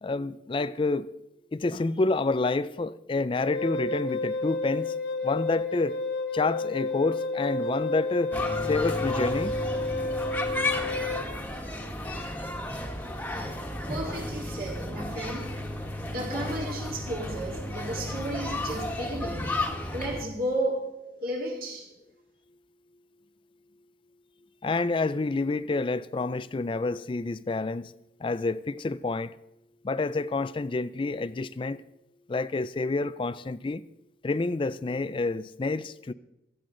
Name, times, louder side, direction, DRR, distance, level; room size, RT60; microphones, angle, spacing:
voice 1, 0.0-1.1 1.5-4.9 5.2-6.0 6.3-8.3 8.6-9.6 16.4-16.5 24.6-27.9 28.2-29.3 29.8-31.8 32.3-33.8 34.2-36.1, left 3 dB, 30° left, 0.4 m, -28 dB
Wind instrument woodwind instrument, 3.4-11.3, left 3 dB, 80° left, 1.8 m, -31 dB
sound 1, 8.3-20.2, left 1 dB, 10° left, 1.5 m, -33 dB
voice 2, 13.8-15.6 16.0-19.5 19.9-21.9, right 1 dB, 55° right, 3.8 m, -33 dB
17.0 x 14.5 x 3.8 m
head